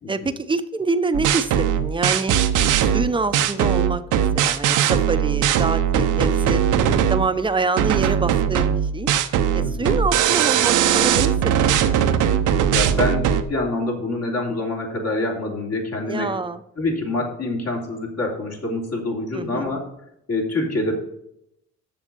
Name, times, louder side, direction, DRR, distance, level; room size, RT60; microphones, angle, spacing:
voice 1, 0.1-2.4 2.8-6.6 7.1-9.1 9.5-12.0 16.1-16.6 19.3-19.7, right 3 dB, 15° right, 11 dB, 0.7 m, -26 dB
sound 1, 1.1-7.3 7.8-13.4, right 9 dB, 85° right, 0.8 m, -19 dB
voice 2, 9.6-10.0 12.7-16.3 16.8-19.8 20.3-20.9, left 2 dB, 55° left, -1 dB, 3.1 m, -26 dB
7.3 x 6.4 x 6.7 m, 0.79 s
cardioid pair, 90°, 30 cm